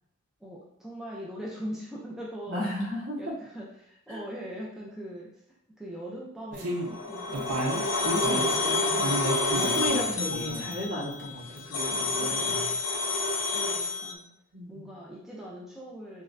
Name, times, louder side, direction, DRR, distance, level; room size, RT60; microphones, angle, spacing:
voice 1, 0.4-2.7 3.2-5.4 5.8-8.4 12.2-12.7 13.5-14.3 14.7-16.2, equal, ahead, -5 dB, 0.5 m, -41 dB
voice 2, 2.5-3.3 4.1-4.2 8.1-9.1 9.5-12.7 14.5-14.9, equal, 55° right, -5 dB, 1.5 m, -34 dB
sound 1, 6.5-6.9 7.3-8.6 9.0-10.0 10.3-10.8 11.1-11.2 11.6-11.7, right 1 dB, 90° right, 0.7 m, -31 dB
sound 2, 6.7-14.1, left 3 dB, 80° left, 0.6 m, -29 dB
6.1 x 2.2 x 2.6 m, 0.72 s
head